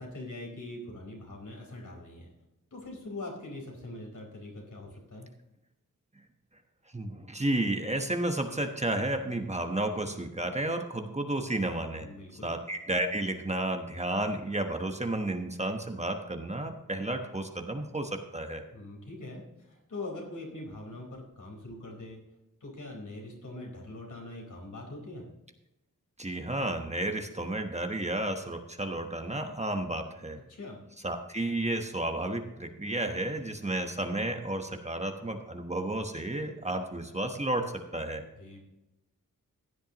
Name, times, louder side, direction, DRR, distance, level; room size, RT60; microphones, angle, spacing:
voice 1, 0.0-2.3 2.7-5.3 12.0-12.5 18.7-22.2 22.6-25.2 30.5-30.8 38.3-38.6, left 2 dB, 70° left, 0 dB, 4.4 m, -42 dB
voice 2, 6.9-12.1 12.4-18.6 26.2-30.4 31.0-38.2, right 1 dB, 20° right, 4 dB, 1.1 m, -32 dB
15.5 x 10.0 x 3.0 m, 0.94 s
wide cardioid pair, 130°, 32 cm